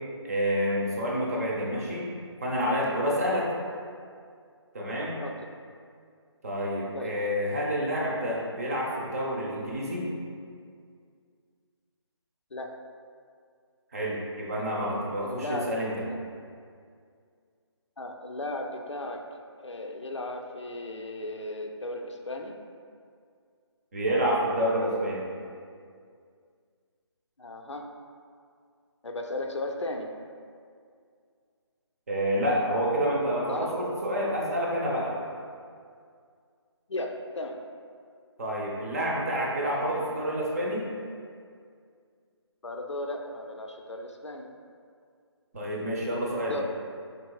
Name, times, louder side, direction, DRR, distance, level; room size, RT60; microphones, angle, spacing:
voice 1, 0.2-2.1 2.4-3.5 4.7-5.2 6.4-10.1 13.9-15.9 23.9-25.3 32.1-35.2 38.4-40.9 45.5-46.6, equal, 30° right, -3 dB, 0.7 m, -28 dB
voice 2, 15.2-15.6 16.1-16.2 18.0-19.2 19.6-22.6 27.4-27.9 29.0-30.1 33.5-33.7 36.9-37.6 42.6-44.5 46.5-46.6, left 2 dB, 80° left, 3 dB, 0.5 m, -35 dB
4.6 x 4.0 x 2.3 m, 2.2 s
figure-of-eight pair, 150°, 15 cm